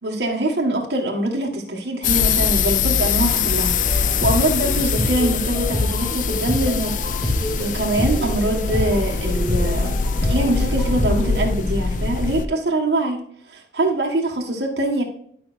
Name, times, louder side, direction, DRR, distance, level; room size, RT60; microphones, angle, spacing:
voice 1, 0.0-7.0 7.6-10.0 10.3-13.2 13.5-15.0, right 1 dB, 65° right, -1 dB, 1.6 m, -23 dB
sound 1, 2.0-12.5, left 5 dB, 45° left, 0.4 m, -22 dB
sound 2, 3.7-11.5, left 1 dB, 20° left, 1.6 m, -27 dB
11.5 x 5.7 x 2.5 m, 0.62 s
head